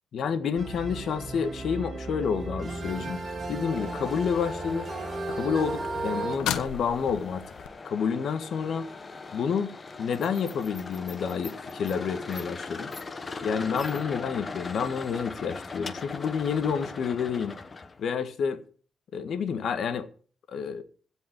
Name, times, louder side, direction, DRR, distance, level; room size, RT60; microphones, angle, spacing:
voice 1, 0.1-3.2 3.5-4.9 5.3-7.4 7.8-8.9 9.3-9.7 10.0-12.9 13.4-17.6 18.0-18.6 19.1-20.1 20.5-20.8, left 6 dB, 60° left, 1.7 m, -29 dB
sound 1, 0.6-6.4, right 2 dB, 40° right, 3.7 m, -35 dB
sound 2, 3.7-18.0, left 4 dB, 30° left, 1.2 m, -40 dB
sound 3, 4.6-7.7 11.2-11.3, left 9 dB, 85° left, 1.2 m, -36 dB
16.0 x 5.4 x 8.8 m
cardioid pair, 90°, 0 cm